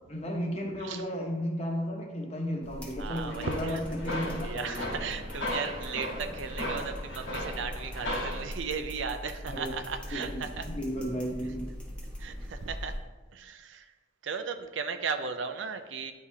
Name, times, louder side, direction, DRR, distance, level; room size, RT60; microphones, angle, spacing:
voice 1, 0.1-4.9 9.5-9.7 10.1-11.7, equal, 30° left, 0 dB, 1.0 m, -34 dB
sound 1, 2.6-13.0, equal, 5° left, 0.9 m, -41 dB
voice 2, 2.9-3.8 4.1-10.7 11.4-11.5 12.2-13.0 13.3-13.9 14.2-16.1, right 5 dB, 70° right, 7 dB, 0.5 m, -36 dB
sound 2, 3.3-8.4, left 1 dB, 75° left, 1.4 m, -36 dB
9.8 x 3.6 x 2.8 m, 1.2 s
head